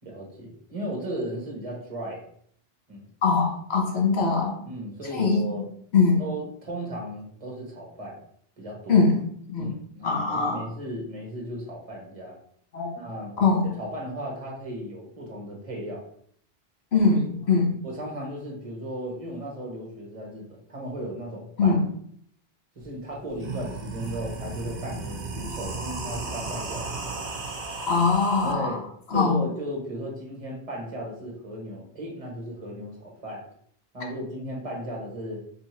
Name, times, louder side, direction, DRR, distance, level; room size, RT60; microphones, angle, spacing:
voice 1, 0.0-2.2 2.9-3.0 4.7-5.6 6.2-8.2 8.6-9.0 9.6-12.4 13.0-13.3 13.6-16.0 17.8-21.8 22.7-26.9 28.4-28.8 29.1-33.5 33.9-35.4, right 1 dB, 35° right, -1 dB, 1.1 m, -36 dB
voice 2, 3.2-4.6 5.1-5.7 5.9-6.2 8.9-9.2 9.5-9.7 10.0-10.7 12.7-12.9 13.4-13.7 16.9-17.8 21.6-21.8 27.8-28.8 29.1-29.4, left 4 dB, 90° left, 0 dB, 1.4 m, -22 dB
sound 1, 22.8-22.9 23.3-28.5, right 3 dB, 60° right, 0.8 m, -35 dB
3.5 x 2.7 x 4.3 m, 0.64 s
omnidirectional pair, 1.1 m